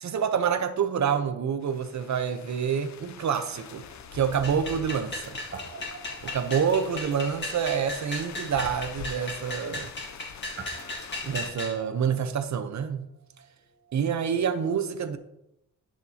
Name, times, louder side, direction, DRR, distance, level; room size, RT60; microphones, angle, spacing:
voice 1, 0.0-3.8 4.1-5.4 6.2-9.9 11.2-13.1 13.9-15.2, right 7 dB, 55° right, 0.8 m, -27 dB
sound 1, 1.6-11.5, left 8 dB, 55° left, 0.6 m, -45 dB
Guitar, 3.6-5.2 5.5-14.1, right 5 dB, 35° right, 0.9 m, -49 dB
sound 2, 4.4-11.8, left 2 dB, 35° left, 1.8 m, -36 dB
10.5 x 7.3 x 2.8 m
wide cardioid pair, 125°, 33 cm